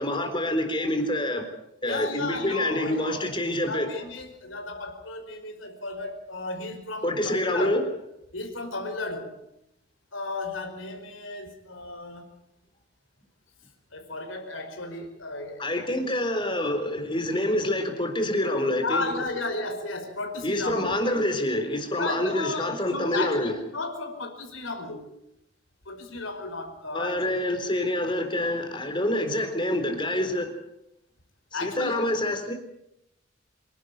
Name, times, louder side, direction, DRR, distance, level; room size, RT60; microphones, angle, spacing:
voice 1, 0.0-1.5 1.8-3.9 7.0-7.8 15.6-19.1 20.4-23.6 26.9-30.5 31.5-32.5, left 1 dB, 25° left, 6 dB, 4.0 m, -27 dB
voice 2, 1.8-3.2 3.7-7.8 8.3-9.4 10.1-12.3 13.9-15.7 18.8-21.0 22.0-25.1 25.9-27.4 31.5-32.0, left 3 dB, 80° left, 4 dB, 5.2 m, -34 dB
26.5 x 12.0 x 9.5 m, 0.82 s
head